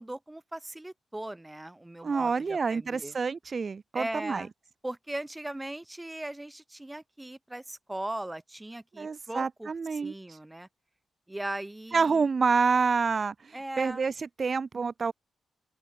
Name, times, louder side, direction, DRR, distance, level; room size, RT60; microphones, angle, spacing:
voice 1, 0.0-3.1 3.9-4.5 4.8-10.7 11.3-12.3 13.5-14.1, right 1 dB, 15° right, 1.5 m, -39 dB
voice 2, 2.0-4.5 9.0-10.1 11.9-15.1, right 5 dB, 50° right, 1.1 m, -28 dB
open air
supercardioid pair, 45°, 0 cm